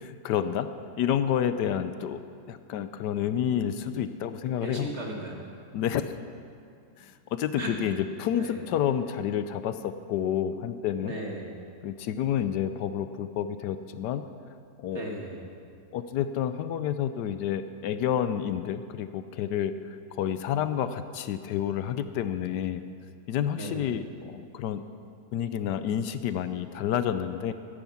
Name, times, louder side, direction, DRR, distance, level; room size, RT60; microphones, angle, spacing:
voice 1, 0.0-0.7 1.0-2.2 2.5-4.9 5.7-6.1 7.0-11.2 11.8-14.3 14.8-15.0 15.9-19.7 20.1-22.8 23.3-24.8 25.3-27.5, left 9 dB, 80° left, 11 dB, 1.2 m, -29 dB
voice 2, 4.6-5.4 7.6-7.8 8.4-8.6 11.0-11.5 14.9-15.5 23.5-23.9, right 1 dB, 40° right, -1 dB, 2.0 m, -36 dB
13.0 x 10.0 x 7.1 m, 2.3 s
omnidirectional pair, 1.8 m